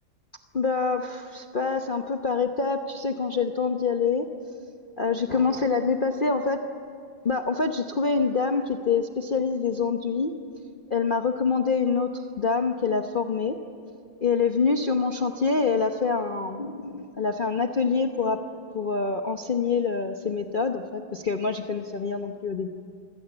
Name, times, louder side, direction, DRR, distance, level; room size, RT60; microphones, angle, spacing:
voice 1, 0.5-4.3 5.0-6.6 7.2-10.3 10.9-13.6 14.2-18.4 18.7-22.7, left 5 dB, 40° left, 3 dB, 0.8 m, -26 dB
26.0 x 17.0 x 8.9 m, 2.4 s
omnidirectional pair, 2.0 m